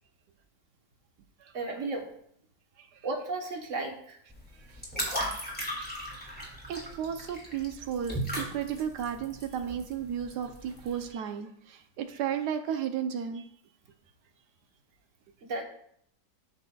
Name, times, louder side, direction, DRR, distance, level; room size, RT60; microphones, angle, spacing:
voice 1, 1.5-2.1 3.0-4.2 15.4-15.6, right 3 dB, 50° right, 2 dB, 1.4 m, -34 dB
sound 1, 4.3-11.0, equal, 5° left, 2.4 m, -37 dB
voice 2, 6.1-13.4, right 8 dB, 80° right, 7 dB, 1.2 m, -34 dB
11.5 x 6.2 x 2.3 m, 0.67 s
omnidirectional pair, 1.8 m